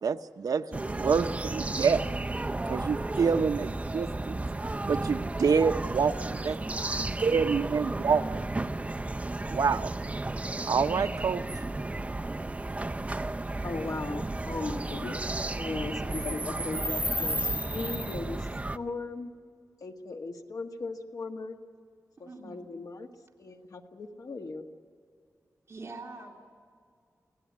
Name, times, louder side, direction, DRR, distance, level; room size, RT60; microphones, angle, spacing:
voice 1, 0.0-2.0 2.7-4.4 4.9-6.6 7.0-8.2 9.5-9.9 10.7-11.4, right 5 dB, 75° right, 7 dB, 0.7 m, -27 dB
sound 1, 0.7-18.8, right 2 dB, 20° right, 0.6 m, -33 dB
voice 2, 13.6-19.3 19.8-21.6 22.2-23.1 23.4-24.7, left 3 dB, 70° left, 4 dB, 1.8 m, -38 dB
voice 3, 22.2-22.6 25.7-26.4, right 3 dB, 40° right, -1 dB, 2.7 m, -44 dB
26.0 x 17.0 x 8.5 m, 2.2 s
wide cardioid pair, 120°, 6 cm